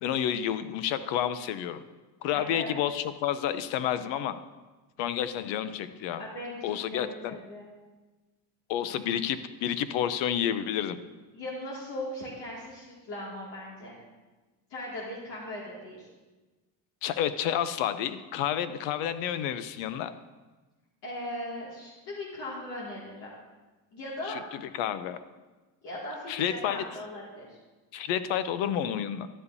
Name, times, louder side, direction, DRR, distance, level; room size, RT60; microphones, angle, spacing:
voice 1, 0.0-1.8 2.2-4.4 5.0-6.2 6.6-7.4 8.7-11.0 17.0-20.1 24.3-25.2 26.3-26.8 27.9-29.3, left 10 dB, 85° left, 12 dB, 0.7 m, -30 dB
voice 2, 2.3-2.8 6.2-7.7 11.3-14.0 14.7-16.1 21.0-23.4 23.9-24.4 25.8-27.6, left 1 dB, 65° left, -6 dB, 2.4 m, -39 dB
12.5 x 9.7 x 2.7 m, 1.2 s
cardioid pair, 175°, 43 cm